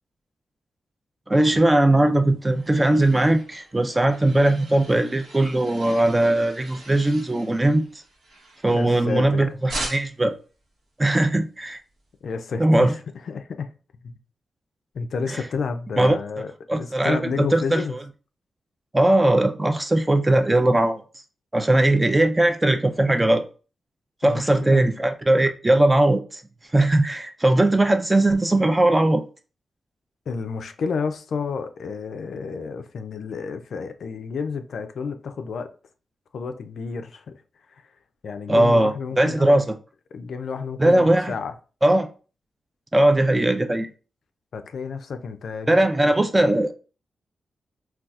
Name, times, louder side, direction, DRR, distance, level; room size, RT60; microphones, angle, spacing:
voice 1, 1.3-7.8 8.6-10.3 11.0-11.8 12.6-12.9 15.3-15.4 16.0-16.2 16.7-17.8 18.9-21.0 21.5-23.4 24.2-26.4 26.7-29.2 38.5-39.6 40.8-41.3 41.8-42.1 42.9-43.9 45.7-46.7, right 1 dB, 20° right, 0.4 m, -19 dB
sound 1, 2.0-9.3 9.7-10.3, right 1 dB, 80° right, 1.1 m, -40 dB
voice 2, 8.7-9.6 12.2-13.7 14.0-14.1 14.9-18.0 24.2-24.8 30.3-35.7 36.3-37.4 37.7-37.9 38.2-39.6 40.1-41.5 44.5-45.7 46.0-46.2, left 5 dB, 75° left, 0.4 m, -31 dB
4.0 x 2.3 x 2.3 m
cardioid pair, 85°, 0 cm